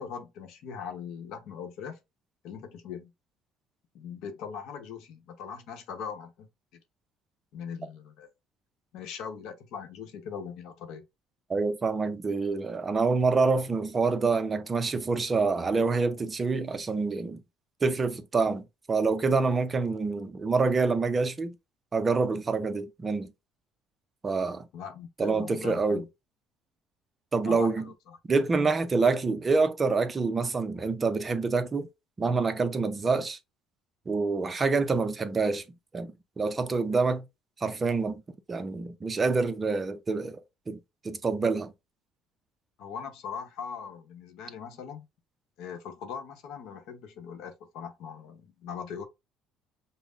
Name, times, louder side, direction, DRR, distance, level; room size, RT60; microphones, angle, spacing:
voice 1, 0.0-2.0 2.4-3.1 3.9-6.5 7.5-8.3 8.9-11.0 24.7-26.1 27.4-28.2 42.8-45.1 45.6-49.0, left 7 dB, 70° left, 0.8 m, -40 dB
voice 2, 11.5-17.4 17.8-21.6 21.9-23.3 24.2-24.7 25.2-26.0 27.3-27.9 28.3-31.9 32.2-33.4 34.1-35.6 35.9-37.2 37.6-38.2 38.5-40.4 40.7-40.8 41.0-41.7, right 4 dB, 20° right, 0.4 m, -26 dB
5.4 x 2.0 x 2.4 m
cardioid pair, 145°, 0 cm